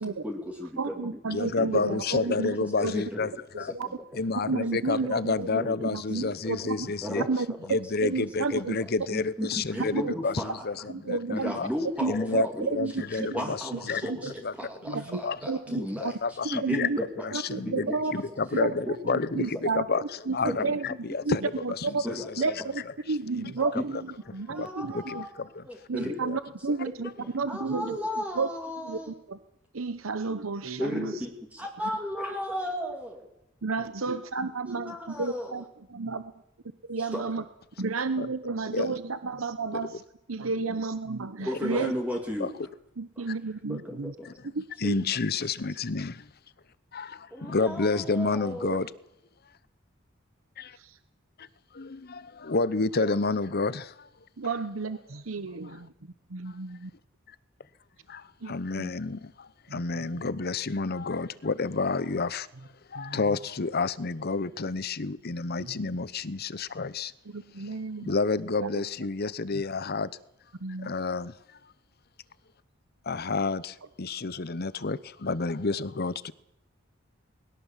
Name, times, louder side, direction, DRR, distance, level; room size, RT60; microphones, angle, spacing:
voice 1, 0.0-1.2 1.6-2.0 2.3-2.5 2.9-3.3 3.8-3.9 5.5-5.8 7.0-7.3 9.1-10.6 11.3-12.7 13.1-18.0 20.5-20.7 22.0-22.3 23.6-23.8 24.5-25.3 25.6-26.2 27.5-29.1 30.8-33.3 34.7-35.6 37.0-37.2 41.4-42.5 43.2-43.3 43.7-44.3 47.3-48.8, equal, 5° right, 2.4 m, -35 dB
voice 2, 0.8-2.9 3.7-3.9 4.4-6.9 7.3-7.5 8.0-8.8 9.9-10.1 10.9-11.6 12.0-12.9 13.7-13.8 14.1-14.3 14.9-16.1 16.4-17.0 17.3-18.1 18.6-19.0 19.4-20.9 21.2-21.4 21.6-22.0 22.4-22.8 23.1-24.0 24.3-25.3 25.9-28.0 28.3-28.5 28.8-29.4 29.7-31.1 33.6-35.6 35.9-36.3 36.9-37.4 37.8-39.9 40.3-41.9 43.0-44.1 44.5-44.9 50.8-50.9 53.0-53.1 54.4-55.9 56.3-56.9 58.4-58.5 58.8-58.9 59.7-59.8 63.0-63.2 65.6-65.7 67.3-68.1 68.6-68.7 70.6-70.9, right 4 dB, 85° right, 0.9 m, -31 dB
voice 3, 1.3-3.7 4.1-7.3 7.7-11.7 12.1-14.1 14.4-14.5 15.2-15.4 15.7-16.9 17.2-21.4 21.7-22.6 23.3-23.5 23.9-24.0 24.3-25.6 26.0-26.4 38.2-38.3 38.7-38.9 39.7-39.9 41.8-41.9 42.4-42.5 44.2-44.3 44.8-46.3 46.9-48.9 50.6-50.8 51.4-51.5 51.7-54.1 55.6-55.8 56.5-56.6 58.1-62.5 62.9-67.1 67.6-70.1 70.8-71.3 73.1-76.3, left 4 dB, 50° left, 0.9 m, -30 dB
21.0 x 18.0 x 7.4 m
head